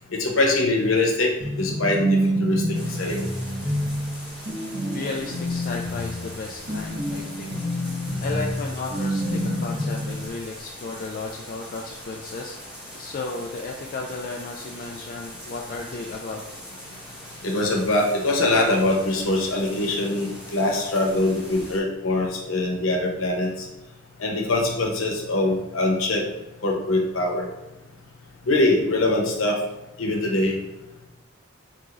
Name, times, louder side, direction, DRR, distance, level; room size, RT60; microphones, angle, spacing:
voice 1, 0.1-1.3 1.6-2.6 3.0-3.2 17.4-23.7 24.2-26.2 26.6-27.5 28.5-29.6 30.0-30.5, left 2 dB, 70° left, 0 dB, 0.9 m, -23 dB
sound 1, 1.4-10.3, equal, 50° right, 1.4 m, -27 dB
sound 2, 2.7-21.8, equal, 5° right, 1.3 m, -42 dB
voice 2, 4.9-7.6 7.8-7.9 8.2-12.6 13.0-16.4, left 3 dB, 45° left, 0 dB, 0.3 m, -34 dB
4.8 x 3.5 x 2.6 m, 0.98 s
head